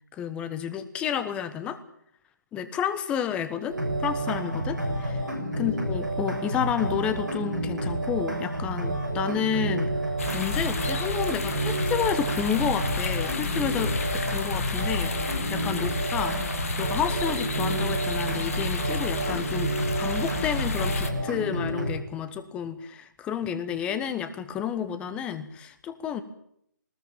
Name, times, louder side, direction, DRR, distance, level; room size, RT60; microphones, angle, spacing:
voice 1, 0.1-1.8 2.5-5.2 5.6-16.4 16.8-26.2, left 8 dB, 10° left, 12 dB, 1.2 m, -30 dB
sound 1, 3.7-21.9, right 1 dB, 70° right, 7.2 m, -29 dB
sound 2, 10.2-21.1, left 4 dB, 50° left, 2.5 m, -32 dB
20.0 x 18.0 x 8.9 m, 0.71 s
figure-of-eight pair, 145°, 10 cm